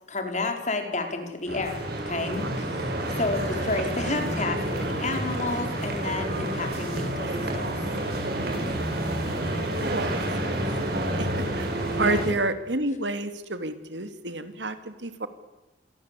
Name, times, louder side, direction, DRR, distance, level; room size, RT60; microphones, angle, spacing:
voice 1, 0.1-1.8 2.1-2.8 3.1-7.8 11.9-12.2, left 3 dB, 40° left, 5 dB, 4.7 m, -31 dB
sound 1, 1.5-12.3, right 1 dB, 60° right, 8.0 m, -29 dB
voice 2, 8.3-9.1 9.4-9.5 9.8-10.5 10.8-15.3, right 2 dB, 75° right, 10 dB, 2.8 m, -31 dB
28.0 x 23.0 x 8.5 m, 1.1 s
head